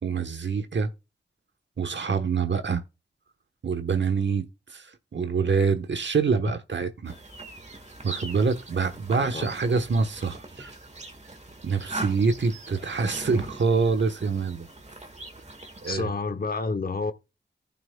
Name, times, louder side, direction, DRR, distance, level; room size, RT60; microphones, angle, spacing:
voice 1, 0.0-0.9 1.8-2.8 3.6-7.1 8.0-10.7 11.6-14.7 15.8-16.1, right 5 dB, 75° right, 1.1 m, -26 dB
sound 1, 7.1-15.9, right 2 dB, 35° right, 1.7 m, -41 dB
voice 2, 9.2-9.5 15.9-17.1, left 3 dB, 55° left, 1.1 m, -29 dB
15.0 x 5.8 x 2.3 m
cardioid pair, 55°, 19 cm